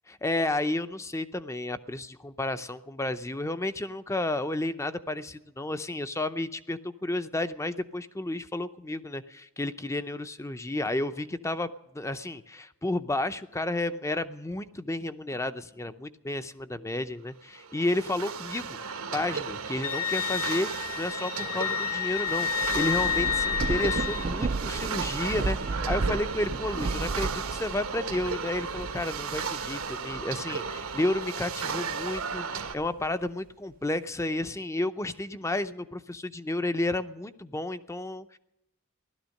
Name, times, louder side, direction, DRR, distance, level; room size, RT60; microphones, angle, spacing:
voice 1, 0.1-38.4, left 2 dB, 15° left, 11 dB, 0.6 m, -32 dB
sound 1, 17.5-32.7, right 5 dB, 75° right, 1.2 m, -35 dB
Wind instrument woodwind instrument, 19.8-24.3, left 10 dB, 75° left, 1.3 m, -30 dB
Thunder / Rain, 22.3-31.2 31.7-33.1, right 3 dB, 40° right, 0.5 m, -34 dB
16.5 x 12.5 x 6.4 m, 0.89 s
head